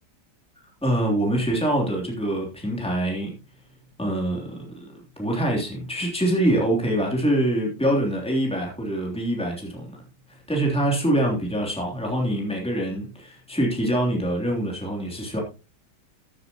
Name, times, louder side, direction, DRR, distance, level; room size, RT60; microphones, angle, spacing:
voice 1, 0.8-3.3 4.0-4.9 5.2-10.0 10.3-15.4, right 1 dB, 5° left, -1 dB, 3.1 m, -25 dB
14.0 x 9.7 x 3.0 m, 0.30 s
omnidirectional pair, 1.8 m